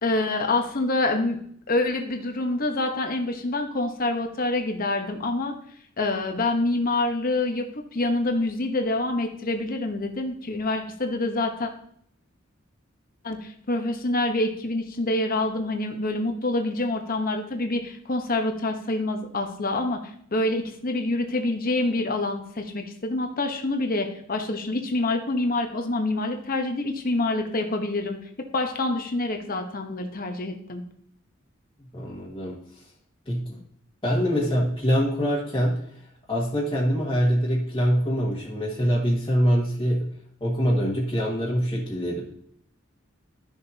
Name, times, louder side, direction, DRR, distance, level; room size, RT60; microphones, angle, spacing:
voice 1, 0.0-1.4 1.7-5.5 6.0-7.7 7.9-11.7 13.2-20.0 20.3-28.2 28.5-30.8, left 2 dB, 45° left, 4 dB, 1.0 m, -26 dB
voice 2, 31.9-32.6 33.2-33.6 34.0-35.8 36.3-40.1 40.4-42.3, equal, 25° left, -7 dB, 1.6 m, -24 dB
12.5 x 6.8 x 2.8 m, 0.65 s
head